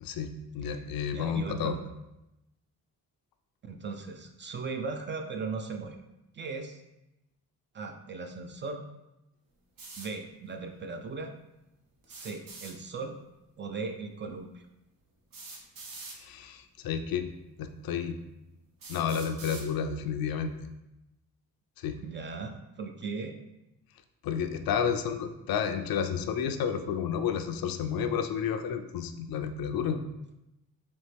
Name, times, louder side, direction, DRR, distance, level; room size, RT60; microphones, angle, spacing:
voice 1, 0.0-1.8 16.2-17.3 17.6-18.2 18.9-20.7 21.8-22.0 24.2-30.0, left 7 dB, 70° left, 7 dB, 0.5 m, -31 dB
voice 2, 1.1-1.9 3.6-6.0 6.3-6.8 7.7-8.8 10.0-11.3 12.1-13.2 13.6-14.6 22.0-23.4, right 4 dB, 30° right, 5 dB, 0.4 m, -38 dB
sound 1, 9.8-10.1 12.0-12.7 14.2-14.3 15.3-16.2 17.2-17.3 18.0-18.1 18.8-19.7, right 3 dB, 65° right, 0.9 m, -44 dB
4.2 x 2.9 x 3.3 m, 0.92 s
cardioid pair, 105°, 37 cm